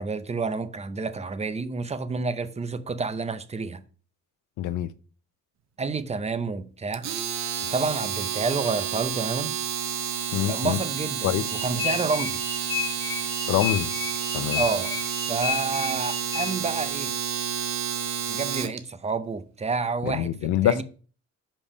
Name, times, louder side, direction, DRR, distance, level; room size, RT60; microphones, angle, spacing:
voice 1, 0.0-3.8 5.8-7.1 7.7-9.6 10.5-12.4 14.6-15.0 15.3-17.2 18.3-20.8, right 4 dB, 20° right, 0.7 m, -29 dB
voice 2, 4.6-4.9 10.3-10.8 11.2-11.5 13.5-13.9 14.3-14.6 20.0-20.8, left 13 dB, 75° left, 0.6 m, -25 dB
Domestic sounds home sounds, 6.9-18.8, right 8 dB, 65° right, 0.8 m, -30 dB
sound 1, 11.5-16.8, left 8 dB, 50° left, 1.9 m, -32 dB
5.4 x 5.3 x 4.9 m
cardioid pair, 90°, 30 cm